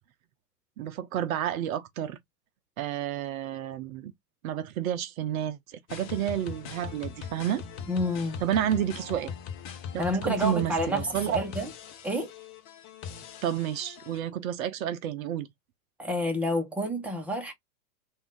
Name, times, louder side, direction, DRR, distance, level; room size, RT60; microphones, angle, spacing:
voice 1, 0.8-2.2 2.8-4.1 4.4-7.6 8.4-9.3 10.2-11.4 13.4-15.5, right 10 dB, 60° right, 0.7 m, -30 dB
sound 1, 5.9-14.2, left 6 dB, 35° left, 0.9 m, -41 dB
voice 2, 7.9-8.4 10.0-11.7 12.0-12.3 16.0-17.5, equal, 5° right, 1.1 m, -29 dB
3.5 x 2.7 x 3.7 m
hypercardioid pair, 110°, 48 cm